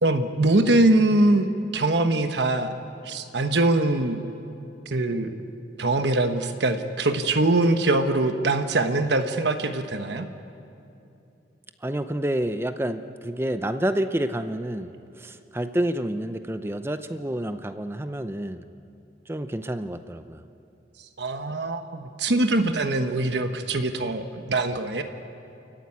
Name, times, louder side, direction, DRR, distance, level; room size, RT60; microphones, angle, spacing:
voice 1, 0.0-2.7 3.0-4.2 4.9-5.3 5.8-10.3 21.2-25.0, right 2 dB, 75° right, 7 dB, 1.1 m, -23 dB
voice 2, 11.8-14.9 15.2-18.6 19.3-20.4, right 1 dB, 15° right, 10 dB, 0.6 m, -28 dB
28.0 x 14.5 x 9.6 m, 2.7 s
head